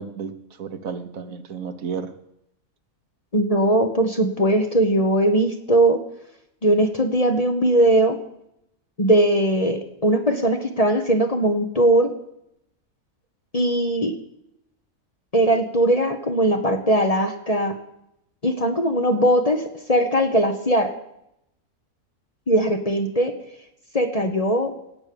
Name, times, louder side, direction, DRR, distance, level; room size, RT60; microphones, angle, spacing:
voice 1, 0.0-2.2, right 6 dB, 70° right, 9 dB, 1.4 m, -32 dB
voice 2, 3.3-6.0 6.6-8.2 9.0-12.1 13.5-14.1 15.3-17.7 18.4-19.6 19.9-20.9 22.5-23.3 23.9-24.7, right 1 dB, 25° left, 5 dB, 1.1 m, -20 dB
18.0 x 8.3 x 7.0 m, 0.79 s
omnidirectional pair, 1.5 m